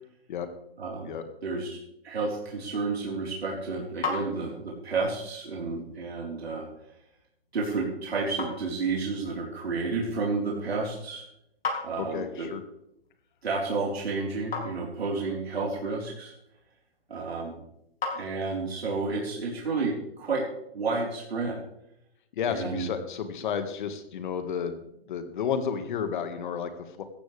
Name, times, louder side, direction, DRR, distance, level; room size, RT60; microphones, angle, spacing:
voice 1, 0.8-1.1 1.4-6.7 7.5-11.2 11.8-12.5 13.4-16.3 17.1-17.6 18.1-20.5 20.7-21.6 22.5-22.9, right 3 dB, 80° right, -4 dB, 4.3 m, -31 dB
sound 1, 3.7-18.9, left 4 dB, 80° left, 5.2 m, -41 dB
voice 2, 12.0-12.6 22.3-24.8 25.1-27.0, left 7 dB, 50° left, 8 dB, 1.8 m, -32 dB
17.0 x 14.5 x 3.4 m, 0.80 s
hypercardioid pair, 140°, 31 cm